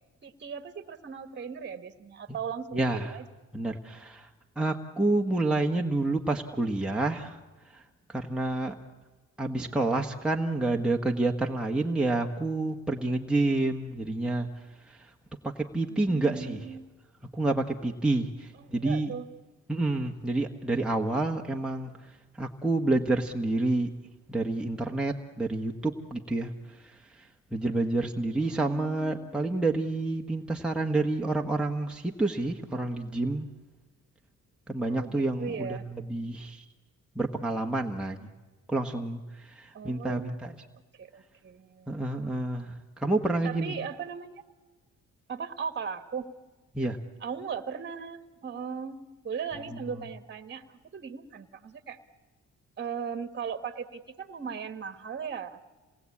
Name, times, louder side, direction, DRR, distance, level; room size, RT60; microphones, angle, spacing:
voice 1, 0.2-3.2 9.6-9.8 15.9-16.8 18.7-19.3 28.4-29.3 34.9-35.8 39.7-40.4 41.0-41.9 43.4-44.4 45.3-46.3 47.2-52.0 52.8-55.6, right 6 dB, 35° right, 10 dB, 1.5 m, -38 dB
voice 2, 2.7-3.2 3.5-4.3 4.6-7.4 7.7-7.8 8.1-8.8 9.4-14.5 14.8-15.1 15.4-16.6 17.3-19.1 19.7-23.9 24.3-33.5 34.7-36.6 37.1-38.3 38.7-40.5 41.9-43.7 46.7-47.0 49.7-50.1, right 2 dB, 5° right, 0 dB, 1.3 m, -29 dB
27.5 x 19.0 x 8.5 m, 1.2 s
cardioid pair, 90°, 30 cm